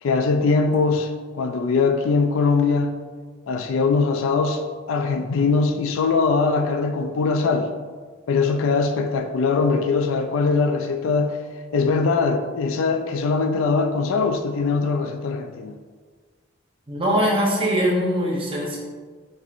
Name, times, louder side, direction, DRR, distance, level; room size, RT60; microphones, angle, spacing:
voice 1, 0.0-2.9 3.5-7.7 8.3-11.4 11.7-15.7, left 4 dB, 70° left, 6 dB, 0.3 m, -21 dB
voice 2, 16.9-18.8, equal, 25° right, -4 dB, 0.7 m, -22 dB
4.3 x 3.5 x 2.5 m, 1.5 s
head